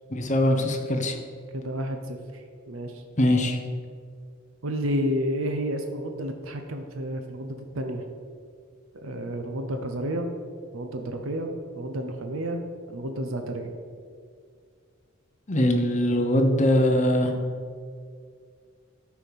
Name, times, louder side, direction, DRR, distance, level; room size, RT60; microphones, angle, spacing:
voice 1, 0.1-1.2 3.2-3.6 15.5-17.3, left 1 dB, 35° left, 4 dB, 1.0 m, -22 dB
voice 2, 1.5-3.0 4.6-8.0 9.0-10.3 10.7-13.7, equal, 85° right, 5 dB, 0.8 m, -31 dB
13.0 x 4.8 x 5.3 m, 2.1 s
head